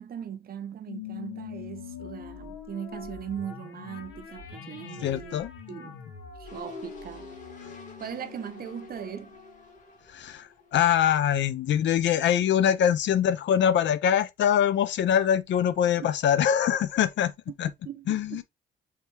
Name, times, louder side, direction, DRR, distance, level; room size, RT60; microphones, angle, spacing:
voice 1, 0.0-5.4 5.7-6.0 6.4-7.3 8.0-9.4 16.0-16.1 17.5-17.6 17.9-18.4, right 9 dB, 50° right, 0.6 m, -39 dB
sound 1, 0.9-9.6, left 8 dB, 90° left, 0.8 m, -43 dB
voice 2, 5.0-5.5 10.1-17.3 17.6-17.7 18.1-18.4, left 9 dB, 65° left, 0.5 m, -23 dB
sound 2, 6.5-11.4 11.7-11.8, left 2 dB, 40° left, 1.3 m, -47 dB
3.5 x 2.7 x 3.0 m
cardioid pair, 90°, 20 cm